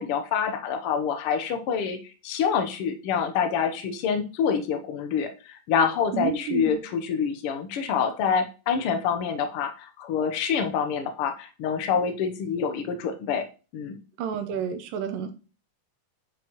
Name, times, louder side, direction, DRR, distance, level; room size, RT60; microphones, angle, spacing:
voice 1, 0.0-2.0 2.2-13.5 13.7-14.0, left 7 dB, 90° left, 7 dB, 1.2 m, -26 dB
voice 2, 6.1-6.8 14.2-15.3, right 7 dB, 80° right, 8 dB, 2.5 m, -30 dB
9.3 x 5.1 x 3.0 m, 0.33 s
omnidirectional pair, 3.9 m